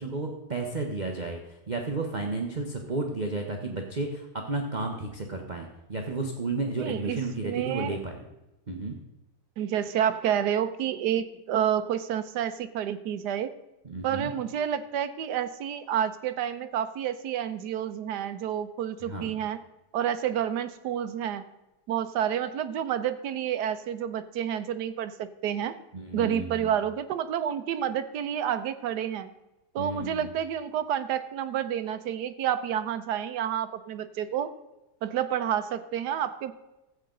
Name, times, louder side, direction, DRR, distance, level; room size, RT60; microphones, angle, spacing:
voice 1, 0.0-8.1 8.7-9.0 13.8-14.3 19.0-19.4 25.9-26.7 29.8-30.3, right 3 dB, 30° right, 2 dB, 0.9 m, -32 dB
voice 2, 6.8-8.0 9.6-13.5 14.0-19.6 19.9-21.4 21.9-25.8 26.1-29.3 29.7-34.5 35.0-36.5, right 9 dB, 70° right, 10 dB, 1.2 m, -29 dB
14.0 x 8.0 x 3.9 m, 0.97 s
omnidirectional pair, 2.0 m